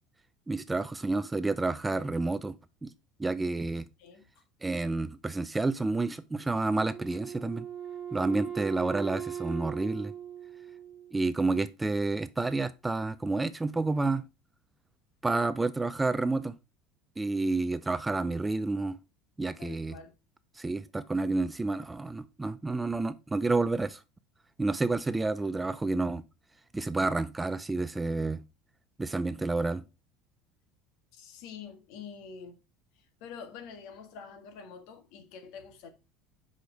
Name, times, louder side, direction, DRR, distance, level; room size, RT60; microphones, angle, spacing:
voice 1, 0.5-2.5 2.8-2.9 3.2-3.9 4.6-7.6 8.1-10.1 11.1-14.2 15.2-16.5 17.2-19.0 19.4-20.0 20.6-24.0 24.6-26.2 26.7-28.4 29.0-29.8, right 3 dB, 10° right, 0.4 m, -29 dB
Wind instrument woodwind instrument, 6.9-11.4, right 8 dB, 25° right, 0.9 m, -39 dB
voice 2, 19.6-20.1 31.1-32.6 32.9-35.9, left 6 dB, 70° left, 1.5 m, -46 dB
6.8 x 5.0 x 3.8 m
cardioid pair, 140°, 0 cm